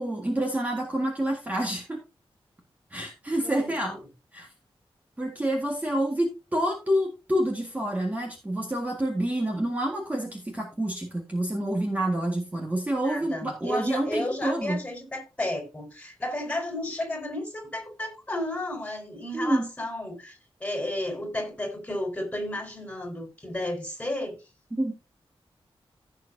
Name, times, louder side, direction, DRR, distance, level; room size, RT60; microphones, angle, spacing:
voice 1, 0.0-2.0 2.9-4.0 4.3-4.5 5.2-14.8 19.3-19.7 24.8-24.9, right 1 dB, 15° right, 1.8 m, -28 dB
voice 2, 3.3-4.0 13.0-24.4, left 1 dB, 15° left, 4.5 m, -33 dB
16.0 x 6.8 x 2.7 m
wide cardioid pair, 160°, 10 cm